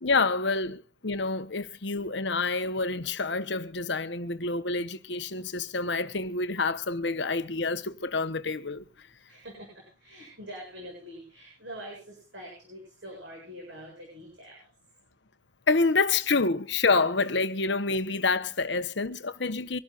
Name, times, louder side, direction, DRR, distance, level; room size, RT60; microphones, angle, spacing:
voice 1, 0.0-8.8 15.7-19.8, left 3 dB, 70° left, 1.1 m, -27 dB
voice 2, 9.3-14.6, equal, 80° right, 7.6 m, -44 dB
25.0 x 12.5 x 2.5 m
head